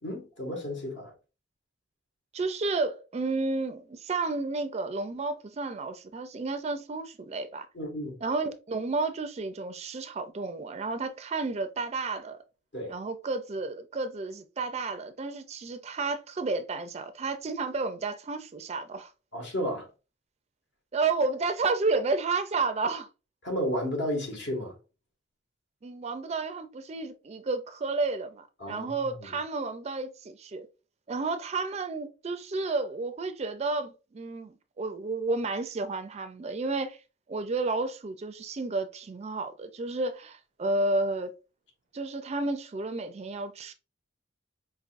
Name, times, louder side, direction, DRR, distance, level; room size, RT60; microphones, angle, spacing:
voice 1, 0.0-1.1 7.7-8.2 12.7-12.9 19.3-19.9 23.4-24.7 28.6-28.9, equal, 70° left, 1.6 m, -32 dB
voice 2, 2.3-7.7 8.2-12.4 12.9-19.1 20.9-23.1 25.8-30.7 31.1-37.0 37.3-41.3 41.9-43.7, right 3 dB, 35° right, 0.4 m, -31 dB
5.2 x 2.6 x 2.5 m
head